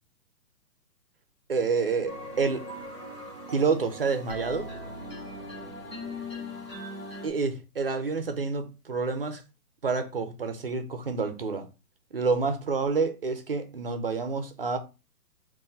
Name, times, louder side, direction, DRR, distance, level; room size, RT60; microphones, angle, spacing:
voice 1, 1.5-2.6 3.5-4.7 7.2-9.4 9.8-11.7 12.1-14.8, right 4 dB, 40° right, 0.5 m, -28 dB
sound 1, 2.1-7.3, left 1 dB, 15° left, 1.0 m, -39 dB
3.8 x 2.6 x 4.0 m
hypercardioid pair, 175°, 46 cm